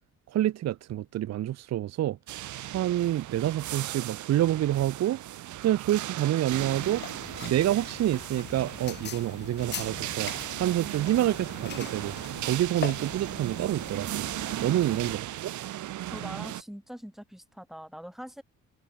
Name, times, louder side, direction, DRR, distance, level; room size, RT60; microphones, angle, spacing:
voice 1, 0.3-2.2 2.7-5.2 5.6-7.0 7.4-14.3 14.6-15.5, right 13 dB, 60° right, 0.7 m, -28 dB
sound 1, 2.3-16.6, right 14 dB, 75° right, 1.2 m, -37 dB
sound 2, 6.5-15.1, left 9 dB, 35° left, 0.5 m, -42 dB
voice 2, 16.1-18.4, equal, ahead, 1.1 m, -42 dB
cardioid pair, 90°, 30 cm